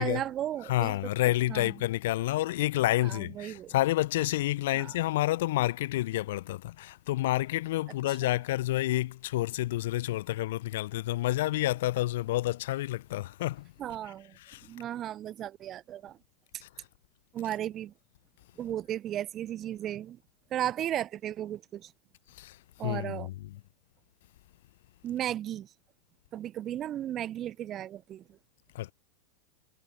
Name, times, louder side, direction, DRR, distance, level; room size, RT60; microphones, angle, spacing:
voice 1, 0.0-1.0 1.5-1.7 3.0-3.7 4.7-4.9 13.8-14.4 14.7-16.2 17.3-17.9 18.6-20.2 20.5-21.9 22.8-23.3 25.0-25.7 26.3-28.4, right 11 dB, 35° right, 0.8 m, -35 dB
voice 2, 0.7-13.7 14.4-14.7 16.6-16.9 22.3-23.6 28.7-28.9, left 16 dB, 60° left, 0.9 m, -29 dB
figure-of-eight pair, 85°, 0 cm